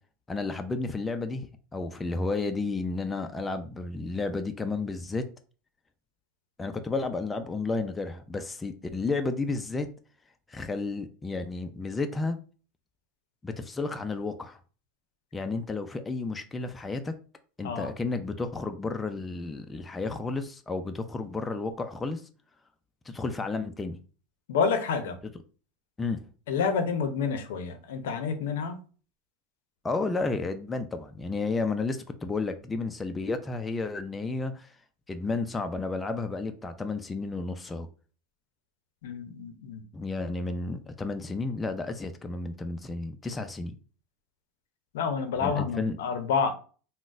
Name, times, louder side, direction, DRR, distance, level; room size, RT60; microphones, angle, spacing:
voice 1, 0.3-5.3 6.6-9.9 10.5-12.4 13.4-14.6 15.3-17.1 17.6-22.2 23.1-24.0 25.2-25.3 26.0-26.2 29.8-34.7 35.1-37.9 39.9-43.8 45.4-46.0, left 3 dB, 15° left, 0.3 m, -32 dB
voice 2, 24.5-25.2 26.5-28.8 39.0-39.8 44.9-46.5, left 5 dB, 80° left, 0.5 m, -28 dB
3.8 x 2.1 x 2.5 m
supercardioid pair, 115°, 0 cm